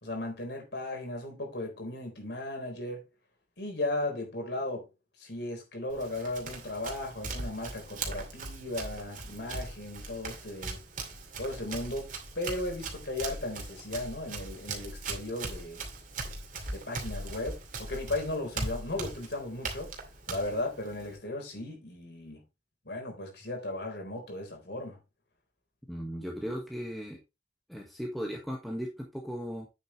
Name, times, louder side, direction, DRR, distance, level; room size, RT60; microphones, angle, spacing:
voice 1, 0.0-3.0 3.6-4.9 5.2-10.8 11.4-15.8 16.7-19.9 20.3-22.4 22.9-25.0, left 2 dB, 70° left, 4.1 m, -36 dB
Run, 5.9-21.2, right 3 dB, 45° right, 2.4 m, -40 dB
voice 2, 25.9-27.2 27.7-29.7, equal, ahead, 1.5 m, -37 dB
9.0 x 7.5 x 3.2 m
head